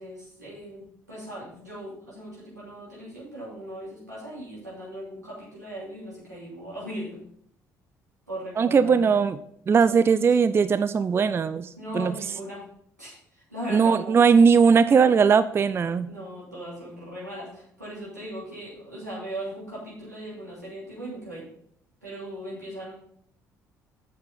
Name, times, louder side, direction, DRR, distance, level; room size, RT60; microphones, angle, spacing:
voice 1, 0.0-7.2 8.3-9.0 9.7-9.9 11.8-12.6 13.0-14.2 16.0-21.5 22.0-22.9, equal, 90° right, -7 dB, 2.8 m, -38 dB
voice 2, 8.6-9.4 9.7-12.1 13.7-16.1, right 6 dB, 25° right, 14 dB, 0.4 m, -19 dB
7.9 x 6.8 x 3.9 m, 0.66 s
figure-of-eight pair, 50°, 9 cm